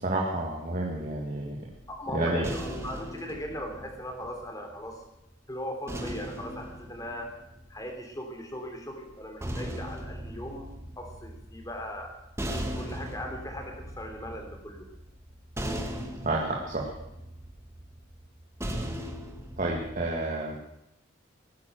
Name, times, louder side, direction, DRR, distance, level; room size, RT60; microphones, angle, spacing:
voice 1, 0.0-1.6 2.1-2.5 16.2-16.9 19.6-20.6, right 2 dB, 40° right, -2 dB, 2.0 m, -30 dB
sound 1, 1.6-4.9 5.9-8.1 9.1-20.2, equal, 15° right, 1.6 m, -39 dB
voice 2, 1.9-5.0 5.5-7.3 7.7-10.7 11.0-12.1 12.8-14.8, equal, 15° left, 3 dB, 3.1 m, -38 dB
17.5 x 10.0 x 7.9 m, 0.87 s
head